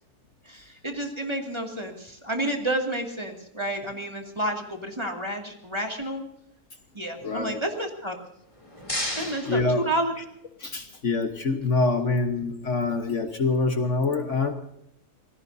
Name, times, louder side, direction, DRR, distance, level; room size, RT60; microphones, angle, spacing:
voice 1, 0.5-6.2 6.9-8.2 9.2-9.6 9.8-10.2, right 1 dB, 20° right, 2 dB, 2.3 m, -30 dB
voice 2, 7.2-7.7 9.0-9.9 10.6-14.5, left 3 dB, 55° left, 6 dB, 1.5 m, -26 dB
sound 1, 8.3-10.6, left 1 dB, 20° left, 3.0 m, -35 dB
26.5 x 18.5 x 2.7 m, 0.75 s
omnidirectional pair, 1.6 m